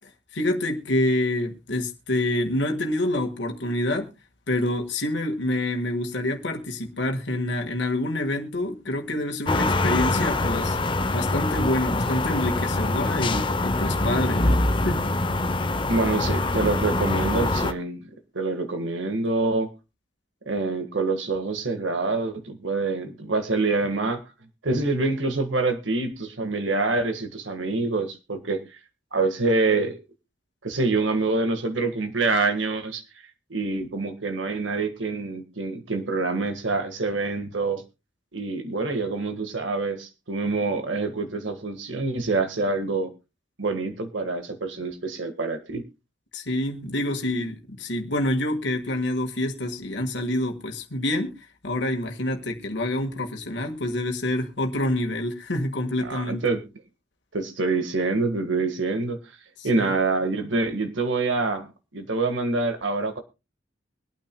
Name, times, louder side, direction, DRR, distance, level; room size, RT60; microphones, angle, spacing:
voice 1, 0.3-4.1 4.5-10.8 11.1-15.1 46.3-51.3 51.6-56.4 59.6-59.9, left 1 dB, 65° left, 1.7 m, -27 dB
sound 1, 9.5-17.7, left 2 dB, 25° left, 0.7 m, -24 dB
voice 2, 15.9-18.0 18.3-19.7 20.4-24.2 24.6-28.6 29.1-30.0 30.6-33.0 33.5-37.8 38.3-43.1 43.6-45.8 56.0-56.7 57.3-59.2 59.6-63.2, right 3 dB, 80° right, 1.6 m, -26 dB
24.0 x 9.0 x 2.2 m
head